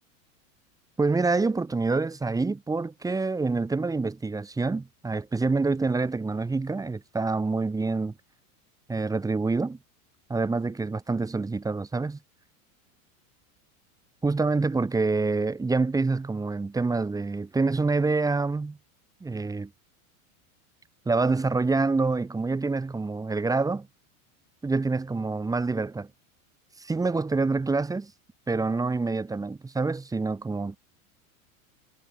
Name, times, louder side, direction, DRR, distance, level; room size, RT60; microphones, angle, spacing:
voice 1, 1.0-8.1 8.9-9.8 10.3-12.2 14.2-18.8 19.2-19.7 21.0-23.9 24.6-26.1 26.8-28.1 28.5-30.8, right 3 dB, 10° right, 1.3 m, -26 dB
supercardioid pair, 135°, 42 cm